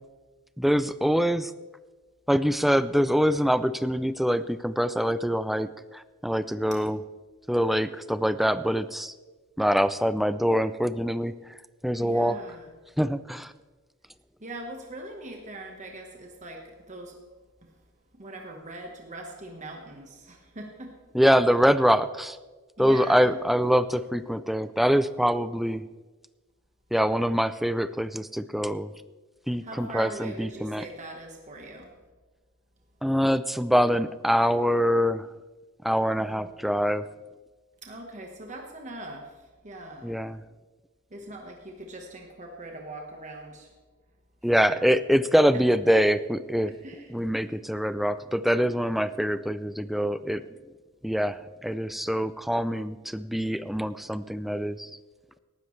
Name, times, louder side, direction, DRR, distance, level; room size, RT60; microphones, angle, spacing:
voice 1, 0.6-1.5 2.3-7.0 7.5-9.1 9.6-11.3 11.8-12.4 13.0-13.5 21.1-22.4 22.8-25.8 26.9-28.9 29.5-30.9 33.0-35.3 35.8-37.0 40.0-40.4 44.4-46.7 47.1-50.4 51.0-55.0, equal, ahead, 13 dB, 0.3 m, -24 dB
voice 2, 12.0-12.7 14.4-16.6 16.9-17.2 18.1-20.9 22.8-23.4 29.6-31.9 36.2-36.5 37.8-39.3 39.6-40.1 41.1-43.7 44.5-44.9 46.8-47.1, right 1 dB, 35° right, 2 dB, 1.3 m, -41 dB
18.0 x 13.0 x 3.2 m, 1.3 s
head